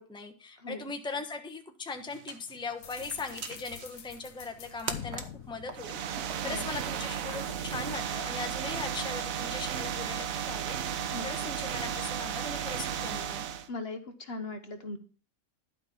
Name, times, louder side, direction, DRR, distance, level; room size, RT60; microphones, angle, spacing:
voice 1, 0.0-13.4, left 4 dB, 5° left, 5 dB, 1.0 m, -40 dB
sound 1, 1.9-9.5, right 5 dB, 50° right, 1.4 m, -46 dB
sound 2, 2.8-6.7, left 9 dB, 80° left, 1.2 m, -46 dB
sound 3, 5.7-13.7, right 8 dB, 75° right, 1.2 m, -34 dB
voice 2, 13.7-15.0, left 2 dB, 50° left, 7 dB, 1.3 m, -39 dB
12.0 x 5.4 x 7.3 m, 0.38 s
omnidirectional pair, 1.4 m